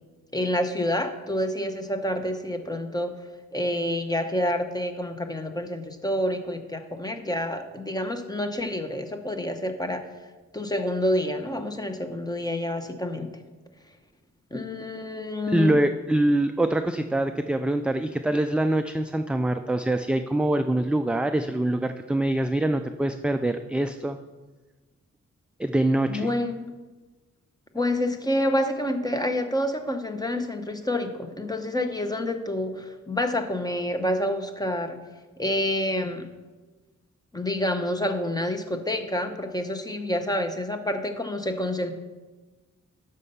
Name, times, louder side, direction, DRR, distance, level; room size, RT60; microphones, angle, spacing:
voice 1, 0.3-3.1 3.5-10.1 10.5-13.3 14.5-15.8 26.1-26.7 27.7-35.0 35.4-36.3 37.3-41.9, left 1 dB, 15° left, 6 dB, 0.9 m, -28 dB
voice 2, 15.5-24.2 25.6-26.3, right 1 dB, 5° right, 7 dB, 0.3 m, -24 dB
12.0 x 5.4 x 5.5 m, 1.3 s
wide cardioid pair, 110°, 30 cm